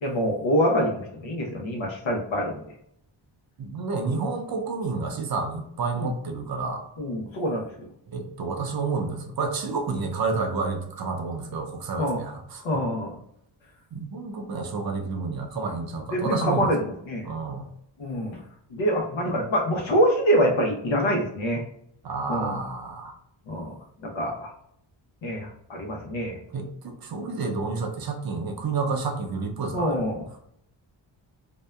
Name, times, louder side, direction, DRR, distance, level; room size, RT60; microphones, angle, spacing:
voice 1, 0.0-2.6 3.9-4.0 5.9-6.1 7.0-7.9 12.0-12.2 12.6-13.2 16.1-17.3 18.0-18.4 18.7-21.6 22.3-22.6 23.5-23.7 24.0-24.5 25.2-26.4 29.7-30.2, equal, 70° left, 0 dB, 0.8 m, -25 dB
voice 2, 3.6-6.8 8.1-12.6 13.9-16.7 17.2-17.7 22.0-23.1 26.5-30.0, right 4 dB, 50° right, 3 dB, 0.5 m, -30 dB
2.7 x 2.2 x 2.2 m, 0.72 s
wide cardioid pair, 100°, 48 cm